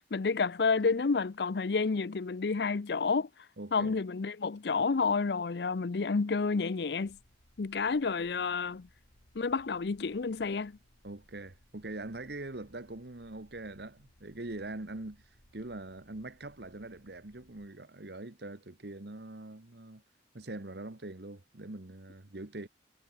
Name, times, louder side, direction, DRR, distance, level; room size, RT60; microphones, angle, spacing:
voice 1, 0.0-3.3 3.7-7.1 7.6-8.8 9.4-10.7, left 4 dB, 60° left, 0.5 m, -30 dB
voice 2, 3.6-4.0 11.0-20.0 20.3-22.7, right 2 dB, 60° right, 1.3 m, -43 dB
sound 1, 7.0-17.7, equal, 80° left, 5.4 m, -64 dB
head